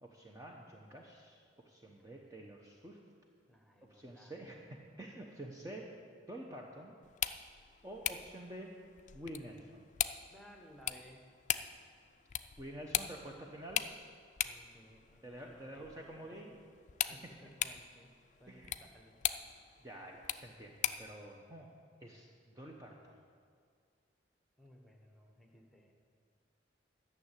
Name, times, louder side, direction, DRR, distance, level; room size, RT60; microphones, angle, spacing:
voice 1, 0.0-3.0 3.9-4.7 5.0-5.9 6.3-6.9 7.8-8.7 9.1-9.9 12.6-13.8 15.2-16.5 18.5-18.8 19.8-21.7 22.0-23.2, right 1 dB, 20° right, 0 dB, 0.9 m, -48 dB
voice 2, 1.8-2.7 3.5-4.3 10.3-11.2 14.4-16.6 17.1-18.1 18.4-19.2 24.6-25.9, equal, ahead, 2 dB, 1.3 m, -60 dB
sound 1, 7.0-21.2, left 10 dB, 40° left, 0.4 m, -41 dB
12.0 x 6.7 x 8.3 m, 2.2 s
head